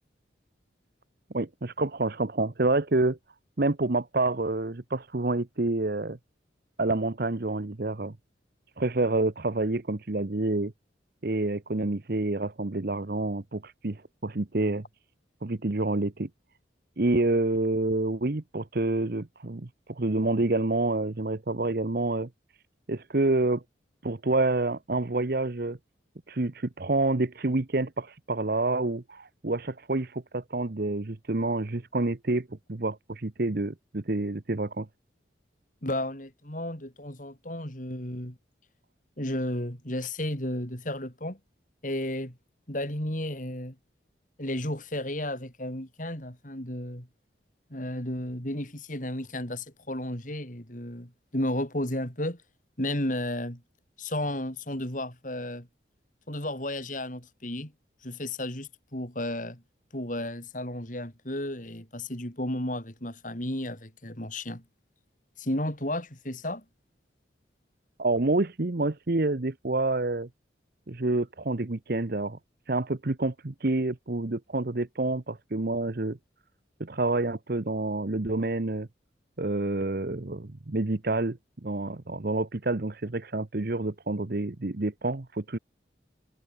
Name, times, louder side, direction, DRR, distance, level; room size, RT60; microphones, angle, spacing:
voice 1, 1.3-3.2 3.6-6.2 6.8-8.1 8.8-10.7 11.2-14.8 15.4-16.3 17.0-22.3 22.9-23.6 24.0-25.8 26.3-34.9 68.0-70.3 70.9-72.4 72.7-76.2 76.8-78.9 79.4-85.6, right 2 dB, 55° right, 0.9 m, -28 dB
voice 2, 35.8-38.4 39.2-41.4 41.8-42.4 42.7-43.8 44.4-47.1 47.7-52.4 52.8-53.6 54.0-55.7 56.3-57.7 58.0-59.6 59.9-64.6 65.4-66.6, left 1 dB, 45° left, 4.7 m, -33 dB
head